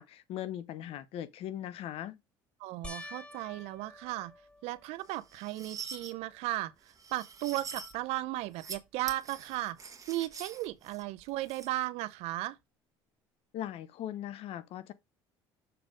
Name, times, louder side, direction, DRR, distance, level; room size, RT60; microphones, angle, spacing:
voice 1, 0.0-2.2 13.5-14.9, left 11 dB, 65° left, 0.9 m, -39 dB
voice 2, 2.6-4.3 4.6-6.7 7.1-9.8 10.1-12.6, right 16 dB, 75° right, 0.6 m, -35 dB
sound 1, 2.8-5.4 6.0-6.6 7.0-7.1 10.3-10.4, left 2 dB, 10° left, 1.2 m, -49 dB
sound 2, 5.1-6.1 6.9-7.9 8.4-8.8 9.1-11.7, right 6 dB, 30° right, 1.6 m, -45 dB
6.8 x 4.0 x 5.0 m
supercardioid pair, 85°, 11 cm